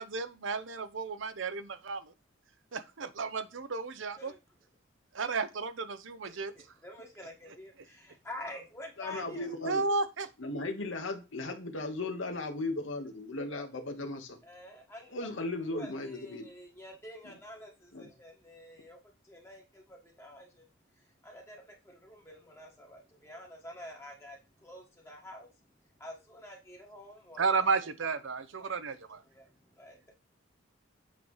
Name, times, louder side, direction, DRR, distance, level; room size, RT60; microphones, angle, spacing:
voice 1, 0.0-2.1 2.7-4.3 5.1-6.5 9.7-10.3 27.4-29.2, right 4 dB, 75° right, 0.7 m, -33 dB
voice 2, 6.2-9.6 14.4-20.6 21.0-27.8 28.6-28.7 29.2-30.1, left 1 dB, 10° left, 1.4 m, -49 dB
voice 3, 9.0-9.8 10.4-14.4 15.1-16.5 17.9-18.1, left 2 dB, 75° left, 1.3 m, -36 dB
8.3 x 3.2 x 5.4 m
head